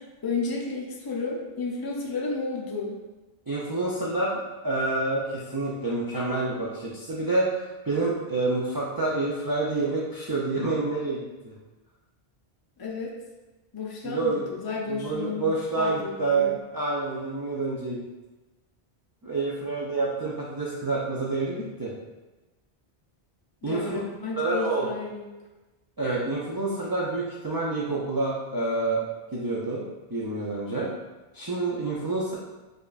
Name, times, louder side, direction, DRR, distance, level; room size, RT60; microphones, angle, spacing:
voice 1, 0.0-3.0 12.8-13.1 13.7-15.5 15.8-16.6 23.6-25.3, left 4 dB, 30° left, -2 dB, 0.5 m, -32 dB
voice 2, 3.5-11.5 14.0-14.5 14.9-18.0 19.2-21.9 23.6-24.0 24.4-24.9 26.0-29.0 29.3-30.9 31.3-32.4, right 3 dB, 30° right, -6 dB, 0.4 m, -28 dB
5.0 x 2.4 x 2.4 m, 1.1 s
omnidirectional pair, 1.0 m